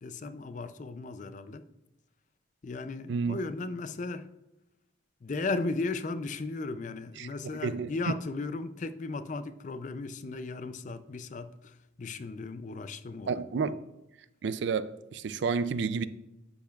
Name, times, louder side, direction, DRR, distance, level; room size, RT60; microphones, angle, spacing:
voice 1, 0.0-1.6 2.6-4.3 5.2-13.7, left 3 dB, 40° left, 0.4 m, -36 dB
voice 2, 7.6-8.1 13.3-13.8 14.4-16.0, right 5 dB, 60° right, 0.4 m, -30 dB
11.5 x 7.1 x 2.3 m
head